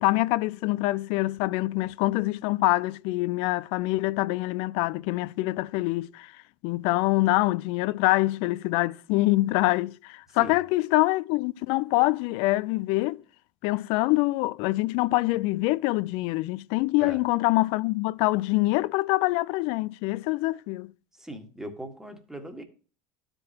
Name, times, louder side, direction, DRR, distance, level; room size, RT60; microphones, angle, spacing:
voice 1, 0.0-6.3 6.6-13.2 13.6-20.9, left 20 dB, 60° left, 0.4 m, -25 dB
voice 2, 21.2-22.6, right 1 dB, 5° right, 1.6 m, -39 dB
12.5 x 5.2 x 2.8 m
hypercardioid pair, 90°, 11 cm